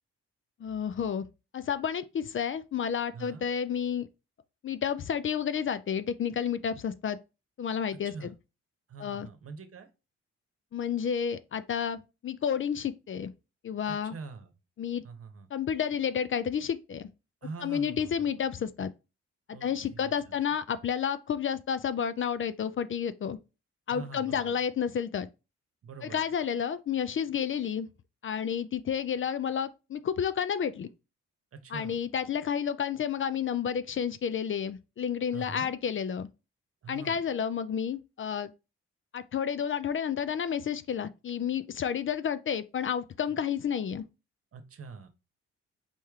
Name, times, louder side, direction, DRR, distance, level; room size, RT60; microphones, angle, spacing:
voice 1, 0.6-1.3 1.5-4.1 4.6-7.2 7.6-8.1 9.0-9.3 10.7-13.3 13.6-14.1 14.8-15.0 15.5-17.1 17.6-18.9 19.6-23.4 23.9-25.3 26.0-27.9 28.2-30.9 31.7-36.3 36.9-38.5 39.1-44.0, left 8 dB, 45° left, 0.5 m, -31 dB
voice 2, 3.1-3.5 8.0-8.3 8.9-9.9 13.9-14.5 15.0-15.5 17.4-18.4 19.5-20.3 23.9-24.5 25.8-26.2 31.5-32.0 35.3-35.7 36.8-37.2 44.5-45.1, right 4 dB, 50° right, 1.0 m, -44 dB
4.4 x 3.1 x 3.5 m
supercardioid pair, 60°, 29 cm